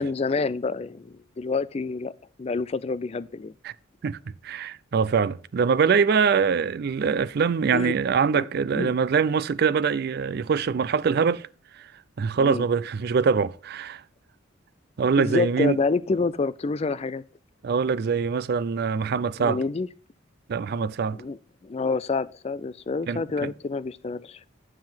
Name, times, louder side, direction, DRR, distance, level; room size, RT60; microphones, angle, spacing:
voice 1, 0.0-2.1 2.4-3.5 7.7-7.9 8.3-8.5 8.7-8.9 12.4-12.6 15.2-17.2 19.4-19.9 21.1-24.4, left 4 dB, 30° left, 0.3 m, -28 dB
voice 2, 4.0-11.5 11.7-11.9 12.2-14.0 15.0-15.8 17.6-19.6 20.5-21.2 23.1-23.5, right 6 dB, 50° right, 0.3 m, -24 dB
7.5 x 7.5 x 4.4 m
head